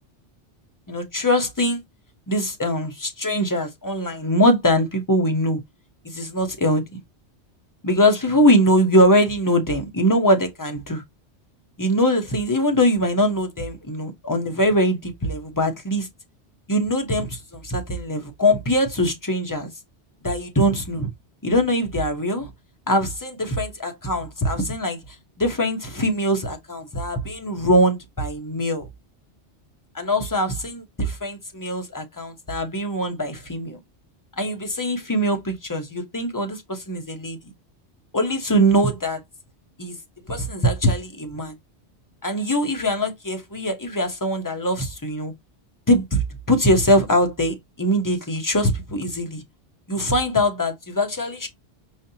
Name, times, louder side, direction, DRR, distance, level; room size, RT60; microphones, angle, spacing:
voice 1, 0.9-1.8 2.3-5.6 6.0-6.8 7.8-11.0 11.8-16.1 16.7-19.7 20.2-21.1 21.4-22.5 22.9-25.0 25.4-28.9 29.9-33.8 34.4-37.4 38.1-39.2 39.8-40.0 40.3-41.5 42.2-45.3 45.9-49.4 49.9-51.5, equal, 20° left, 0.9 m, -22 dB
5.0 x 2.7 x 2.8 m
omnidirectional pair, 1.2 m